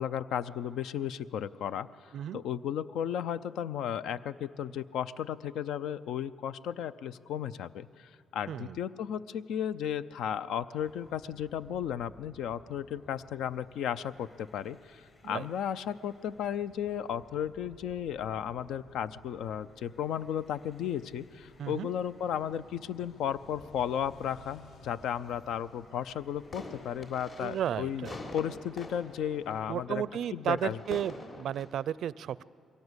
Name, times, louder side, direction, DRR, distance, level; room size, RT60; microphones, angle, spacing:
voice 1, 0.0-28.1 28.3-30.0 30.3-31.0, left 9 dB, 80° left, 15 dB, 0.5 m, -34 dB
voice 2, 8.5-8.8 15.2-15.5 21.6-21.9 27.4-28.2 29.7-32.4, right 10 dB, 70° right, 20 dB, 0.4 m, -33 dB
sound 1, 10.7-28.1, left 2 dB, 30° left, 5.1 m, -60 dB
sound 2, 16.7-29.9, left 5 dB, 65° left, 1.1 m, -60 dB
sound 3, 26.3-31.6, left 2 dB, 45° left, 3.4 m, -46 dB
22.5 x 17.5 x 8.1 m, 2.6 s
cardioid pair, 90°, 0 cm